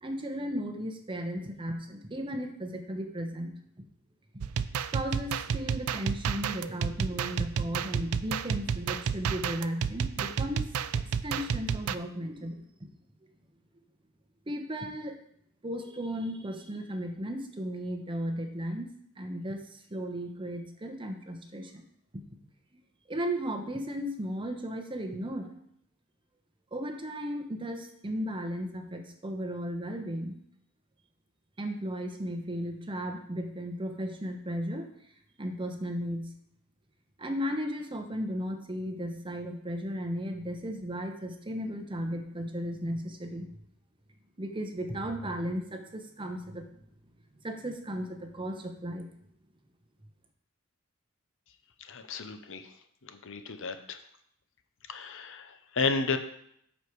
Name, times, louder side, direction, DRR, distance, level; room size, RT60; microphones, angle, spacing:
voice 1, 0.0-3.5 4.9-10.7 11.2-12.9 14.5-15.2 15.6-21.8 22.1-22.2 23.1-25.6 26.7-30.4 31.6-34.9 35.4-36.3 37.2-43.5 44.4-46.7 47.4-49.1, equal, 25° right, 5 dB, 1.0 m, -35 dB
sound 1, 4.4-12.0, right 6 dB, 80° right, 0.4 m, -31 dB
voice 2, 51.8-52.7 53.0-54.0 54.9-56.2, left 4 dB, 65° left, 8 dB, 0.8 m, -33 dB
8.0 x 6.5 x 4.7 m, 0.70 s
head